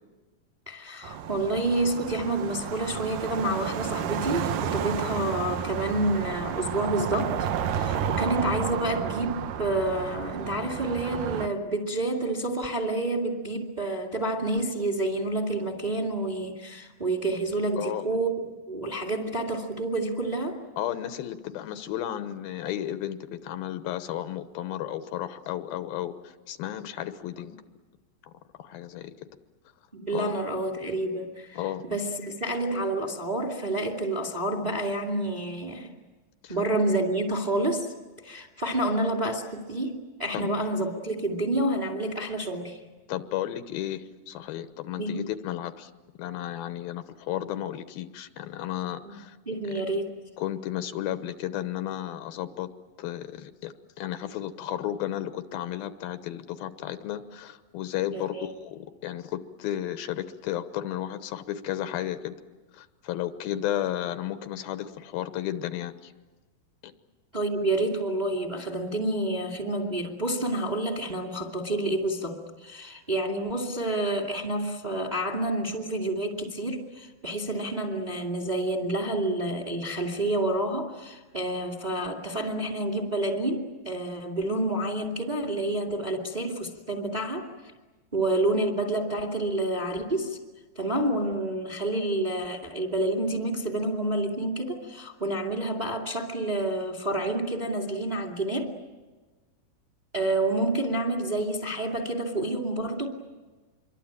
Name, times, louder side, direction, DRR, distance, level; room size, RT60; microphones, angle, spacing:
voice 1, 0.7-18.3 18.7-20.6 29.9-35.9 36.5-37.9 38.2-42.8 45.0-45.2 49.0-49.1 49.5-50.2 58.1-58.5 67.3-87.5 88.1-90.4 90.8-98.7 100.1-103.1, right 1 dB, 15° right, 3 dB, 1.8 m, -29 dB
sound 1, 1.0-11.5, right 8 dB, 70° right, 2.5 m, -31 dB
voice 2, 17.8-18.1 20.8-27.6 28.3-28.4 28.6-29.1 30.1-30.3 31.5-31.8 36.4-36.6 40.3-40.6 43.1-45.9 46.2-49.4 49.6-49.8 50.4-52.7 53.0-62.4 62.7-66.1 66.8-66.9, left 12 dB, 80° left, 11 dB, 2.9 m, -33 dB
26.5 x 23.5 x 8.8 m, 1.3 s
omnidirectional pair, 4.3 m